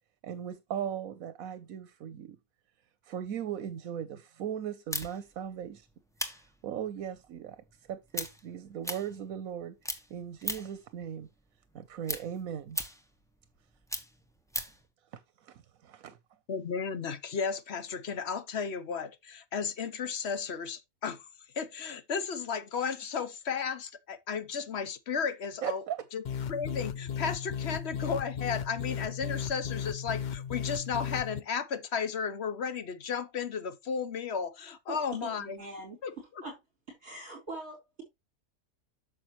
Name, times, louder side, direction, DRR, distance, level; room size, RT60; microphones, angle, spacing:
voice 1, 0.2-2.4 3.0-5.9 6.3-7.6 7.9-11.3 11.7-12.8 15.1-16.2 25.6-26.0, right 9 dB, 85° right, 1.2 m, -38 dB
sound 1, 4.9-9.6 9.8-10.9 11.2-14.8, equal, ahead, 1.1 m, -38 dB
voice 2, 16.5-21.3 21.5-25.8 26.1-26.2 26.5-35.6 36.0-36.1, left 6 dB, 55° left, 1.1 m, -34 dB
sound 2, 26.2-31.4, left 8 dB, 75° left, 0.4 m, -35 dB
voice 3, 34.9-36.0 36.4-36.5 37.0-38.0, right 2 dB, 50° right, 4.1 m, -42 dB
9.4 x 6.7 x 3.0 m
omnidirectional pair, 1.4 m